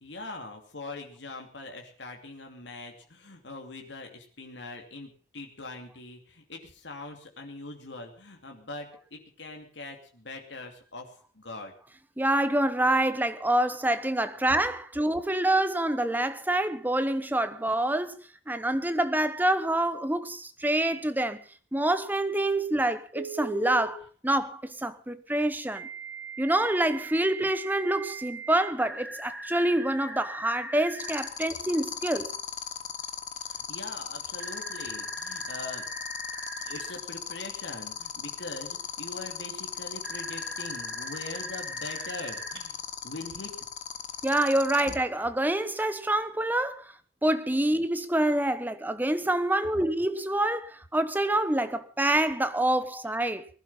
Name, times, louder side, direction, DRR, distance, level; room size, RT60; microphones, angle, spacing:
voice 1, 0.0-11.7 33.4-35.8 36.6-42.8 43.0-43.5 44.9-45.0, left 2 dB, 80° left, 2.8 m, -42 dB
voice 2, 12.2-18.2 18.5-21.4 21.7-25.9 26.4-32.3 44.2-46.9 47.2-53.5, right 1 dB, 10° right, 1.0 m, -26 dB
Telephone, 23.1-23.9 25.7-31.3 34.4-36.9 40.0-42.6, right 3 dB, 85° right, 3.8 m, -40 dB
sound 1, 31.0-44.9, left 9 dB, 45° left, 1.4 m, -36 dB
20.0 x 12.0 x 5.7 m
head